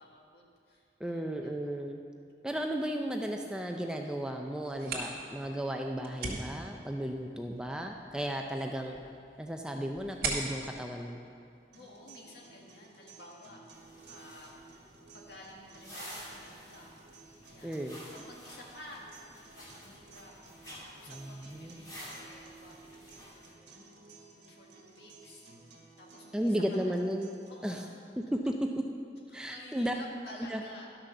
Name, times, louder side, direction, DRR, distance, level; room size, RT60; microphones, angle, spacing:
voice 1, 0.0-1.9 11.7-13.6 14.0-14.5 15.1-17.0 17.5-20.3 20.8-25.5 26.0-27.0 27.5-28.0 29.3-30.9, left 1 dB, 70° left, -2 dB, 1.7 m, -52 dB
voice 2, 1.0-2.0 2.4-9.0 9.4-11.2 17.6-18.0 21.1-21.9 26.3-27.3 27.6-27.8 28.3-28.5 29.3-29.9 30.5-30.6, equal, 5° right, 2 dB, 0.4 m, -34 dB
sound 1, 4.6-12.1, right 3 dB, 55° right, 1.8 m, -41 dB
sound 2, 11.7-27.7, right 4 dB, 80° right, 1.6 m, -56 dB
sound 3, 13.7-23.5, equal, 20° left, 2.4 m, -51 dB
11.5 x 6.1 x 6.6 m, 2.4 s
head